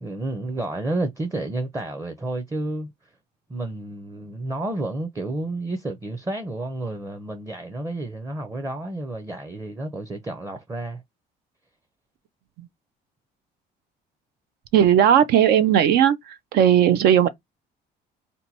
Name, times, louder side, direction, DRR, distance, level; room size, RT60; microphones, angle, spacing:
voice 1, 0.0-2.9 3.5-11.0, right 2 dB, 15° right, 0.7 m, -30 dB
voice 2, 14.7-16.2 16.5-17.3, right 9 dB, 70° right, 0.6 m, -16 dB
2.8 x 2.3 x 4.0 m
cardioid pair, 110°, 17 cm